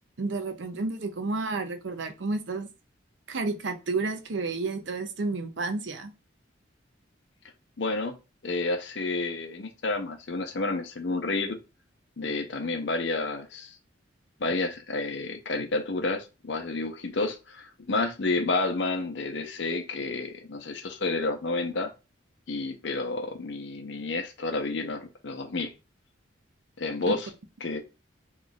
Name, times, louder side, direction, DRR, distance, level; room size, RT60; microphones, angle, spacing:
voice 1, 0.2-2.7 3.3-6.1 15.5-15.6 27.1-27.2, right 3 dB, 65° right, 0.6 m, -31 dB
voice 2, 7.8-8.2 8.4-11.6 12.2-13.8 14.4-21.9 22.5-25.7 26.8-27.3 27.6-27.8, left 3 dB, 65° left, 0.6 m, -30 dB
3.1 x 2.4 x 3.9 m
head